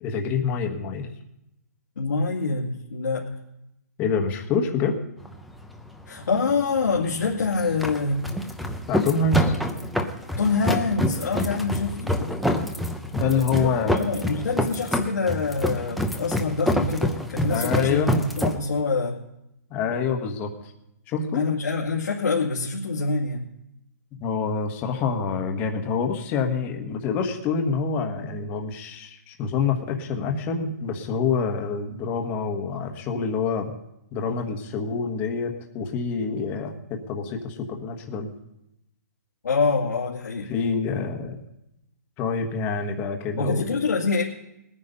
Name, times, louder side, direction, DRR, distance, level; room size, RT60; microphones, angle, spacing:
voice 1, 0.0-1.1 4.0-5.0 8.9-9.6 13.1-14.0 17.5-18.1 19.7-20.5 21.1-21.4 24.2-33.7 34.1-38.3 40.5-41.4 42.2-43.7, left 5 dB, 20° left, 3 dB, 1.4 m, -26 dB
voice 2, 2.0-3.3 6.1-8.3 10.4-12.3 13.6-19.2 21.3-23.5 39.4-40.5 43.4-44.2, left 4 dB, 85° left, -4 dB, 2.3 m, -25 dB
sound 1, 5.2-18.6, equal, ahead, 0.7 m, -27 dB
19.5 x 9.7 x 5.3 m, 0.86 s
hypercardioid pair, 165°, 9 cm